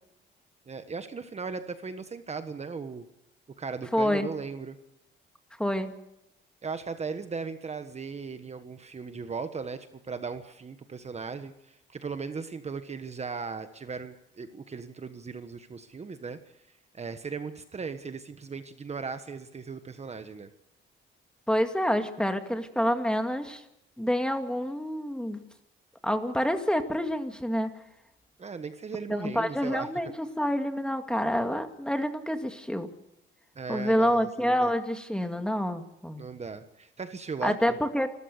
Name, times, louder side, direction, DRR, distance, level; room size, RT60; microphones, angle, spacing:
voice 1, 0.7-3.0 3.6-4.8 6.6-16.4 16.9-20.5 28.4-29.9 33.5-34.7 36.2-37.8, right 5 dB, 35° right, 9 dB, 1.3 m, -37 dB
voice 2, 3.9-4.3 5.6-5.9 21.5-23.6 24.0-25.4 26.0-27.8 29.1-32.9 33.7-36.3 37.4-38.1, equal, 5° left, 6 dB, 2.1 m, -27 dB
28.0 x 14.0 x 6.7 m, 0.84 s
cardioid pair, 90°, 20 cm